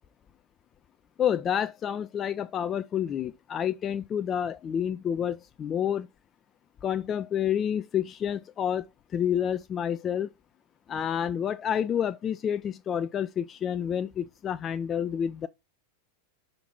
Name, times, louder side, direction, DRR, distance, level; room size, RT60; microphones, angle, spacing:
voice 1, 1.2-6.1 6.8-8.9 9.1-10.3 10.9-15.5, left 9 dB, 25° left, 0.3 m, -29 dB
5.6 x 3.9 x 5.7 m
figure-of-eight pair, 90°, 0 cm